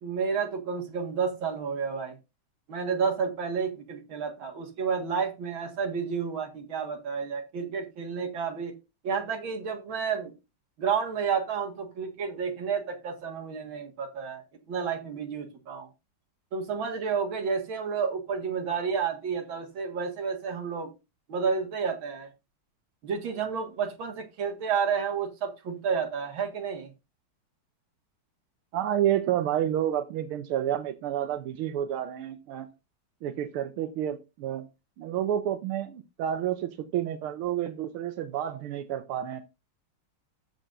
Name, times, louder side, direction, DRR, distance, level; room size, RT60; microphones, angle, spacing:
voice 1, 0.0-2.1 2.7-8.7 9.0-10.3 10.8-15.9 16.5-20.9 21.3-22.3 23.0-26.9, right 6 dB, 70° right, 2.5 m, -30 dB
voice 2, 28.7-32.7 33.2-34.7 35.0-39.4, right 11 dB, 85° right, 1.7 m, -30 dB
13.5 x 6.7 x 2.6 m
omnidirectional pair, 2.3 m